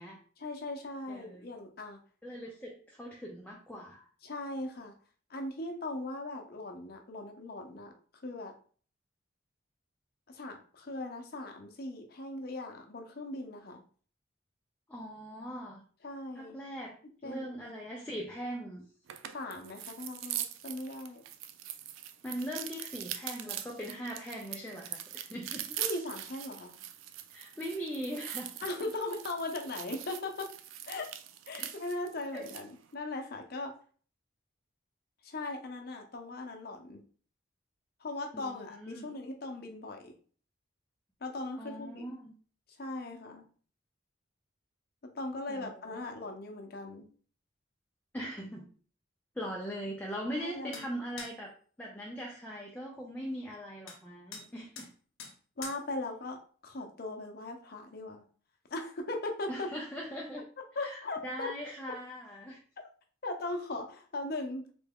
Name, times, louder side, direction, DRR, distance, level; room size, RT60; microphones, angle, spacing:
voice 1, 0.4-2.0 4.2-4.9 5.3-7.9 8.2-8.5 10.3-13.8 16.0-16.6 17.2-17.6 19.3-21.2 25.8-26.7 28.6-30.5 30.9-31.1 31.5-33.7 35.2-37.0 38.0-40.1 41.2-42.0 42.8-43.4 45.1-47.0 50.3-50.9 55.6-56.4 56.6-58.2 58.7-59.7 60.8-61.5 63.2-64.7, left 2 dB, 50° left, 3 dB, 0.6 m, -39 dB
voice 2, 1.1-1.5 2.2-4.1 14.9-15.8 16.4-16.9 17.2-18.8 22.2-25.7 27.3-28.5 31.6-31.7 32.3-32.5 38.3-39.1 41.6-42.3 45.5-46.2 48.1-48.7 49.4-51.5 51.8-54.9 59.5-60.4 60.8-62.6, equal, 10° left, -2 dB, 0.4 m, -40 dB
sound 1, 19.1-32.7, right 11 dB, 80° right, 0.3 m, -42 dB
sound 2, 50.7-50.9 51.2-51.4 53.9-54.0 54.3-54.5 54.8-54.9 55.2-55.3 55.6-55.8, left 5 dB, 85° left, 0.7 m, -44 dB
3.4 x 2.2 x 3.5 m, 0.43 s
head